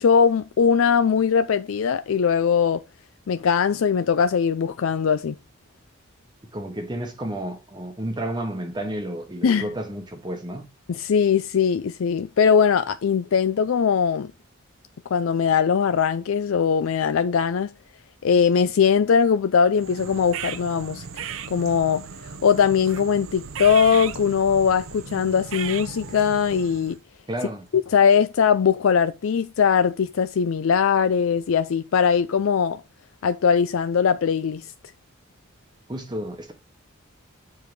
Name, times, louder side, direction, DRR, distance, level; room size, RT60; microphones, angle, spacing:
voice 1, 0.0-2.8 3.3-5.4 9.4-9.7 10.9-14.3 15.1-17.7 18.2-21.1 21.5-22.1 22.4-27.0 27.9-32.8 33.2-34.7, left 6 dB, 70° left, 0.4 m, -20 dB
voice 2, 6.5-10.7 27.3-27.7 35.9-36.5, right 1 dB, 20° right, 1.0 m, -31 dB
sound 1, 19.7-27.0, right 7 dB, 75° right, 0.6 m, -36 dB
7.2 x 4.6 x 4.7 m
head